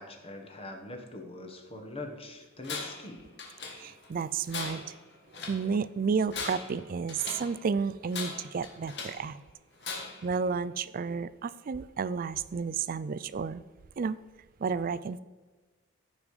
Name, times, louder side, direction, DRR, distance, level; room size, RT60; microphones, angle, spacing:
voice 1, 0.0-3.2, left 2 dB, 25° left, 3 dB, 1.2 m, -43 dB
Tools, 2.6-3.1 3.4-4.1 4.5-5.7 6.2-7.6 8.1-9.3 9.8-10.3, left 4 dB, 50° left, 1.7 m, -39 dB
voice 2, 3.7-4.9 5.4-9.4 10.2-13.6 14.0-14.2 14.6-15.2, right 5 dB, 40° right, 17 dB, 0.3 m, -31 dB
14.5 x 5.4 x 4.9 m, 1.3 s
head